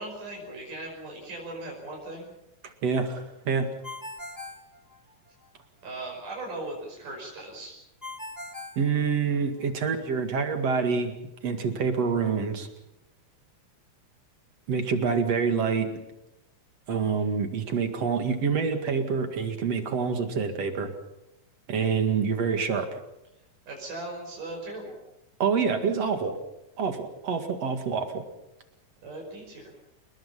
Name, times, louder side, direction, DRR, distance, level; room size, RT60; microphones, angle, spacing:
voice 1, 0.0-2.3 5.8-7.8 23.7-25.0 29.0-29.7, right 2 dB, 80° right, -1 dB, 6.9 m, -38 dB
voice 2, 2.8-3.7 8.8-11.1 11.4-12.7 14.7-15.9 16.9-20.9 21.7-23.0 25.4-26.3 26.8-28.2, right 5 dB, 55° right, 6 dB, 3.1 m, -26 dB
Ringtone, 3.8-5.5 8.0-9.6, left 2 dB, 25° left, 0.4 m, -41 dB
29.0 x 20.5 x 5.7 m, 0.88 s
omnidirectional pair, 3.7 m